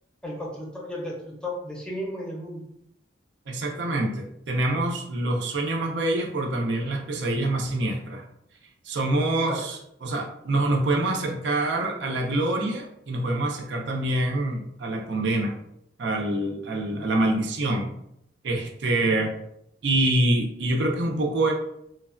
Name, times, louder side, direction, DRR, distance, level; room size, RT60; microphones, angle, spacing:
voice 1, 0.2-2.6 9.5-9.6, left 1 dB, 5° left, -2 dB, 0.6 m, -34 dB
voice 2, 3.5-8.2 8.9-15.5 16.0-17.9 18.4-19.3 19.8-21.5, right 2 dB, 75° right, 1 dB, 0.5 m, -25 dB
3.1 x 2.1 x 2.4 m, 0.75 s
head